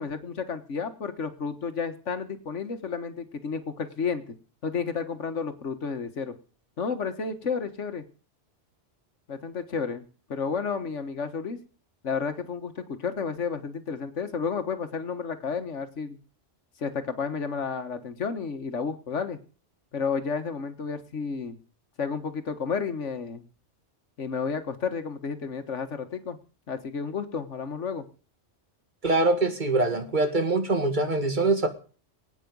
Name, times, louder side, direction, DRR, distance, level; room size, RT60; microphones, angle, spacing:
voice 1, 0.0-4.4 4.6-6.3 6.8-8.1 9.3-11.6 12.0-16.2 16.8-19.4 19.9-21.6 22.0-23.4 24.2-26.4 26.7-28.1, left 5 dB, 80° left, 9 dB, 1.8 m, -31 dB
voice 2, 29.0-31.7, right 2 dB, 40° right, 7 dB, 2.0 m, -23 dB
22.0 x 9.2 x 5.4 m, 0.39 s
omnidirectional pair, 1.2 m